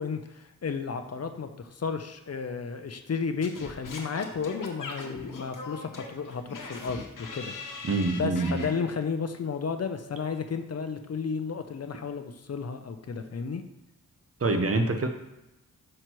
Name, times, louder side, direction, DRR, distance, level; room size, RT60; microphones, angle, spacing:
voice 1, 0.0-7.8 8.2-13.6, left 5 dB, 50° left, 7 dB, 0.6 m, -33 dB
Singing / Scratching (performance technique), 3.4-8.7, left 3 dB, 70° left, 1.2 m, -40 dB
voice 2, 7.8-8.6 14.4-15.1, right 2 dB, 45° right, 6 dB, 0.9 m, -25 dB
6.5 x 5.7 x 3.1 m, 0.94 s
cardioid pair, 55°, 33 cm